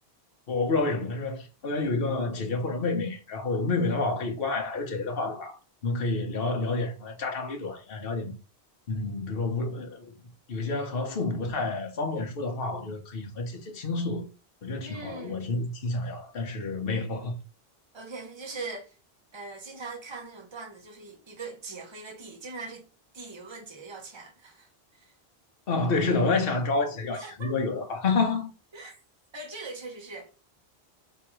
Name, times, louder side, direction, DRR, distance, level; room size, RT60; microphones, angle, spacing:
voice 1, 0.5-5.6 5.8-8.3 8.9-10.1 10.5-14.3 14.6-17.3 25.7-28.5, left 3 dB, 65° left, 1.2 m, -29 dB
voice 2, 14.8-15.5 17.9-19.0 19.3-22.8 23.1-25.1 27.1-27.5 28.7-29.0 29.3-30.3, right 3 dB, 25° right, 1.1 m, -41 dB
3.5 x 2.9 x 4.7 m
omnidirectional pair, 1.0 m